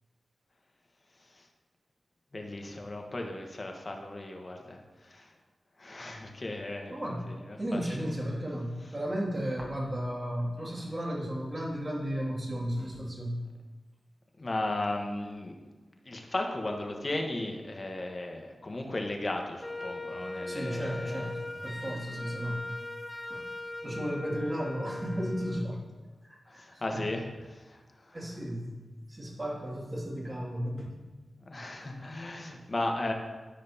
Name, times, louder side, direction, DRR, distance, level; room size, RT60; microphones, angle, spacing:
voice 1, 2.3-5.3 5.8-7.0 7.3-8.0 14.4-15.5 16.0-21.3 26.5-28.2 31.4-33.1, left 2 dB, 45° left, 2 dB, 1.3 m, -36 dB
voice 2, 6.9-7.3 7.6-13.4 20.5-22.7 23.3-23.4 23.8-25.8 26.2-27.0 28.1-28.8 29.1-31.0, equal, 35° right, -4 dB, 2.4 m, -34 dB
Wind instrument woodwind instrument, 19.6-25.7, left 2 dB, 25° left, 0.6 m, -39 dB
13.5 x 5.1 x 2.9 m, 1.3 s
cardioid pair, 45°, 0 cm